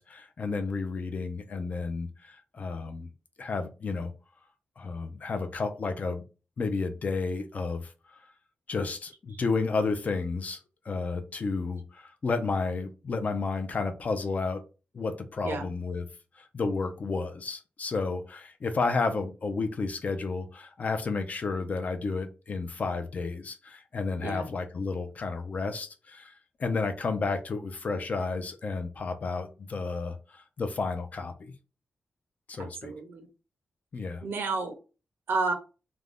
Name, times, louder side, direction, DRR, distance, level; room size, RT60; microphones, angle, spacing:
voice 1, 0.0-3.1 3.4-4.1 4.8-6.2 6.6-7.9 8.7-10.6 10.9-14.6 14.9-16.1 16.4-26.3 26.6-31.5 32.5-32.9 33.9-34.2, left 4 dB, 40° left, 7 dB, 0.4 m, -31 dB
voice 2, 32.6-33.3 34.2-34.8 35.3-35.5, right 3 dB, 60° right, 4 dB, 0.5 m, -31 dB
2.5 x 2.1 x 3.3 m, 0.32 s
wide cardioid pair, 170°, 4 cm